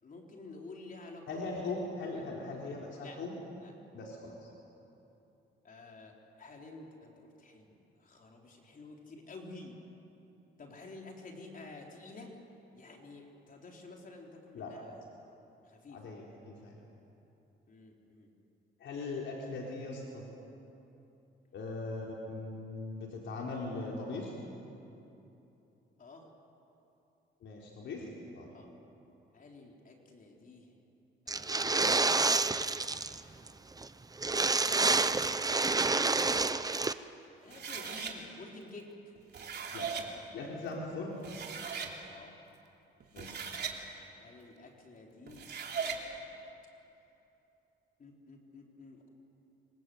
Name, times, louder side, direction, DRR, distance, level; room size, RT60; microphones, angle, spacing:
voice 1, 0.0-1.4 3.0-3.2 3.6-3.7 5.6-9.7 10.6-12.3 12.7-14.9 15.7-16.0 17.7-18.3 26.0-26.2 28.5-28.7 29.3-30.7 31.3-32.6 32.9-33.5 37.4-38.8 40.4-40.5 42.1-42.4 44.2-45.6 48.0-49.1, left 3 dB, 45° left, 1 dB, 4.3 m, -51 dB
voice 2, 1.3-3.3 3.9-4.5 14.5-14.7 15.9-16.8 18.8-20.2 21.5-24.3 27.4-28.1 28.3-28.5 39.7-39.9 40.3-41.2 43.1-43.4, left 3 dB, 70° left, -2 dB, 4.2 m, -40 dB
sound 1, 31.3-33.2 33.5-33.6 33.8-33.9 34.2-36.9, right 3 dB, 20° right, 0.8 m, -28 dB
sound 2, 37.5-38.1 39.1-40.1 40.9-41.0 41.2-41.9 43.0-43.8 45.3-46.0, right 6 dB, 55° right, 3.3 m, -38 dB
26.5 x 25.5 x 8.1 m, 2.9 s
cardioid pair, 90°, 20 cm